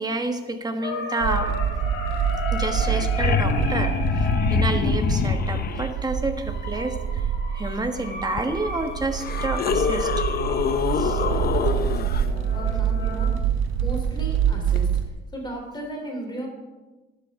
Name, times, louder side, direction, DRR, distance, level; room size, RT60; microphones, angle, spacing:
voice 1, 0.0-1.6 2.5-7.0 7.5-10.3 10.9-11.2, right 2 dB, 20° right, 6 dB, 1.4 m, -29 dB
sound 1, 0.8-13.3, left 3 dB, 65° left, 3.0 m, -35 dB
sound 2, 1.2-15.1, right 8 dB, 90° right, 0.8 m, -26 dB
sound 3, 2.5-2.6 2.7-5.9 8.4-8.5 9.1-12.2 14.8-14.9, left 7 dB, 50° left, 0.7 m, -25 dB
voice 2, 12.3-13.5 13.8-15.0 15.3-16.5, right 1 dB, 20° left, 0 dB, 3.6 m, -35 dB
12.5 x 11.0 x 3.7 m, 1.1 s
cardioid pair, 90°, 20 cm